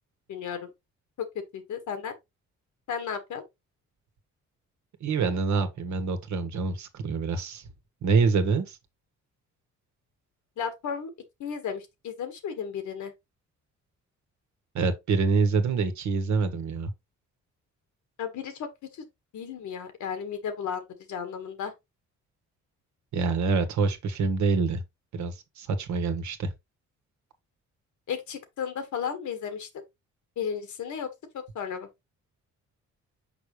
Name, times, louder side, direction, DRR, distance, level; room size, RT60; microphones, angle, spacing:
voice 1, 0.3-0.7 1.2-1.3 1.5-2.1 2.9-3.4 10.6-11.1 11.4-13.1 18.2-18.7 18.9-19.1 19.3-21.7 28.1-29.7 30.4-31.1 31.3-31.9, left 7 dB, 75° left, 1.7 m, -34 dB
voice 2, 5.0-7.7 8.0-8.8 14.7-16.9 23.1-24.8 25.1-26.5, right 4 dB, 70° right, 1.5 m, -26 dB
6.0 x 5.1 x 3.2 m
cardioid pair, 90°, 30 cm